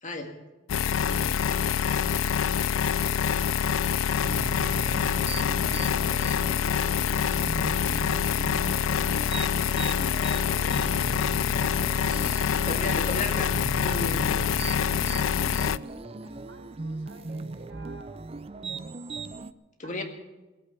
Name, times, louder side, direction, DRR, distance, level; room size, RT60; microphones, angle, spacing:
voice 1, 0.0-0.3 1.1-1.4 12.5-14.5 19.8-20.0, left 2 dB, 40° left, 4 dB, 1.9 m, -34 dB
sound 1, 0.7-15.8, left 7 dB, 85° left, 0.4 m, -26 dB
voice 2, 1.0-2.7 3.0-9.9 10.3-12.8 13.8-18.2 19.8-19.9, right 1 dB, 70° right, 1 dB, 3.4 m, -50 dB
sound 2, 4.2-19.5, right 3 dB, 30° right, 0.5 m, -38 dB
19.5 x 8.2 x 8.2 m, 1.1 s
head